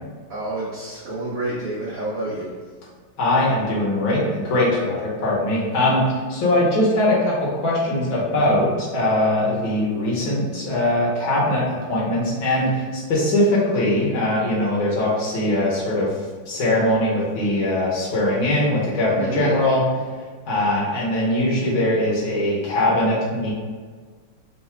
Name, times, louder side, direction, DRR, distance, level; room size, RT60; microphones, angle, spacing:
voice 1, 0.3-2.6 19.2-19.6, right 2 dB, 80° right, -6 dB, 0.7 m, -29 dB
voice 2, 3.2-16.2 16.5-19.8 20.5-23.5, left 1 dB, 65° left, -6 dB, 1.8 m, -21 dB
3.9 x 2.4 x 4.3 m, 1.5 s
omnidirectional pair, 2.4 m